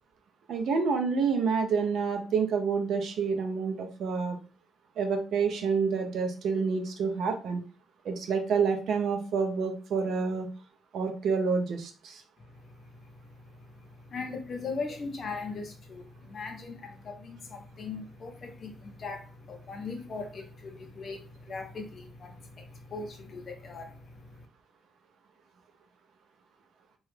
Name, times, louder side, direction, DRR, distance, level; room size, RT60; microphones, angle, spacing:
voice 1, 0.5-4.4 5.0-7.6 8.0-10.5 10.9-12.2, right 5 dB, 70° right, 0.5 m, -28 dB
voice 2, 12.4-13.3 13.9-24.5, left 4 dB, 40° left, 0.7 m, -40 dB
3.0 x 2.3 x 3.2 m
cardioid pair, 150°, 0 cm